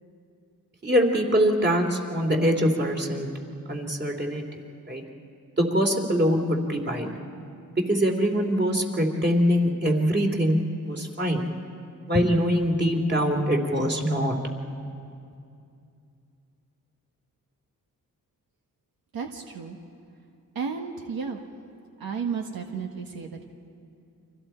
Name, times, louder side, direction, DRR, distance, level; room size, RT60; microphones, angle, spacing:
voice 1, 0.8-3.3 3.7-4.6 4.9-5.0 5.6-7.1 7.8-11.4 12.1-14.3, equal, 30° right, 2 dB, 3.0 m, -23 dB
voice 2, 19.1-19.8 20.5-21.4 22.0-23.5, right 5 dB, 85° right, 3 dB, 1.5 m, -33 dB
30.0 x 25.0 x 4.5 m, 2.5 s
cardioid pair, 80°, 35 cm